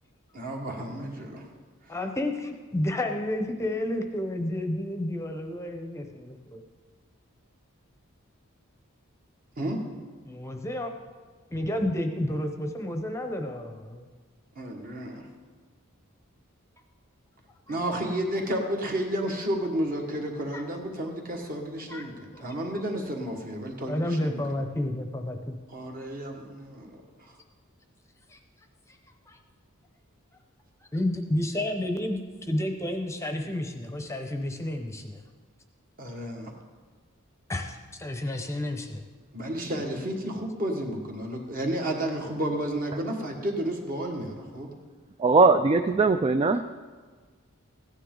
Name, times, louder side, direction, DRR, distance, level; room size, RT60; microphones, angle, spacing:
voice 1, 0.3-1.4 9.6-9.8 14.5-15.2 17.7-24.4 25.7-27.0 36.0-36.5 39.3-44.7, right 1 dB, 40° right, 1 dB, 1.6 m, -31 dB
voice 2, 1.9-6.6 10.2-10.9 11.5-14.1 17.7-17.8 20.5-20.6 21.9-22.0 22.3-22.4 23.9-25.6 28.3-28.4 29.3-29.4 30.9-35.2 37.5-39.0 46.5-46.6, left 1 dB, 15° left, 5 dB, 0.8 m, -31 dB
voice 3, 45.2-46.6, right 3 dB, 25° right, 8 dB, 0.3 m, -20 dB
15.5 x 9.9 x 3.9 m, 1.5 s
head